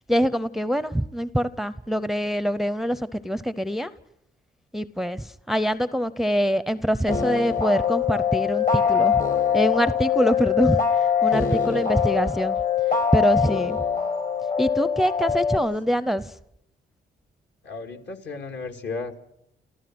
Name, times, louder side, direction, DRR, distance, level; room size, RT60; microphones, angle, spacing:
voice 1, 0.1-3.9 4.7-9.2 9.5-12.6 12.9-13.8 14.6-16.4, equal, ahead, 15 dB, 0.7 m, -24 dB
sound 1, 7.1-15.6, left 7 dB, 45° left, 2.1 m, -23 dB
voice 2, 11.5-11.9 17.6-19.2, left 4 dB, 60° left, 5 dB, 2.6 m, -35 dB
30.0 x 14.5 x 6.2 m, 0.77 s
cardioid pair, 80°, 20 cm